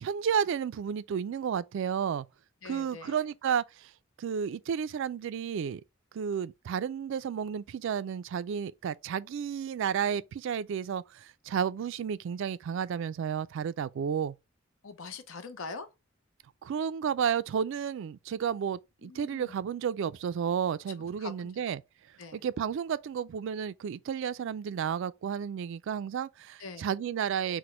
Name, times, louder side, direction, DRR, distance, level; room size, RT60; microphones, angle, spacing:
voice 1, 0.0-2.3 2.6-3.9 4.2-5.8 6.1-14.4 16.6-21.8 22.3-27.6, right 7 dB, 65° right, 0.3 m, -32 dB
voice 2, 2.6-3.2 14.8-15.9 19.0-19.5 21.2-21.5 22.2-22.4 26.6-26.9, left 4 dB, 70° left, 0.6 m, -43 dB
5.9 x 2.1 x 3.1 m
head